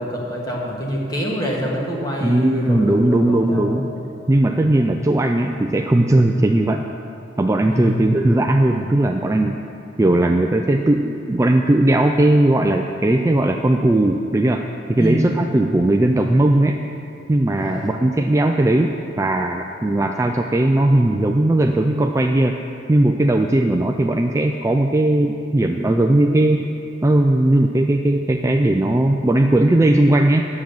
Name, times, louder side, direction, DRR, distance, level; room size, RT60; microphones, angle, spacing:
voice 1, 0.0-3.8 4.6-4.9 7.7-8.0 15.0-15.4 17.5-17.9, equal, 20° left, -3 dB, 1.6 m, -26 dB
voice 2, 2.2-3.9 4.3-6.8 7.4-9.6 10.0-14.6 14.9-16.8 17.3-22.6 22.9-26.7 27.0-30.4, right 1 dB, 15° right, 3 dB, 0.3 m, -18 dB
9.7 x 7.5 x 7.1 m, 2.8 s
head